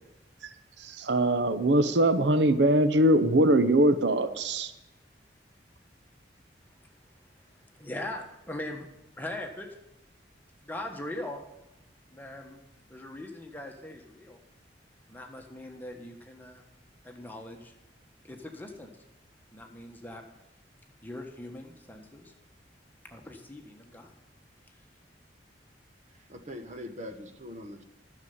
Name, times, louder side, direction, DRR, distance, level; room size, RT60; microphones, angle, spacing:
voice 1, 0.8-4.7, right 1 dB, 80° right, 12 dB, 0.8 m, -22 dB
voice 2, 7.8-8.9 9.2-9.7 10.6-11.4 12.1-12.6 12.9-14.4 15.1-16.6 17.0-17.7 18.3-18.9 19.5-20.2 21.0-22.3 23.1-24.1, left 1 dB, 10° left, 2 dB, 1.5 m, -40 dB
voice 3, 26.2-27.8, left 1 dB, 40° right, 7 dB, 1.3 m, -42 dB
11.5 x 6.9 x 9.5 m, 0.92 s
head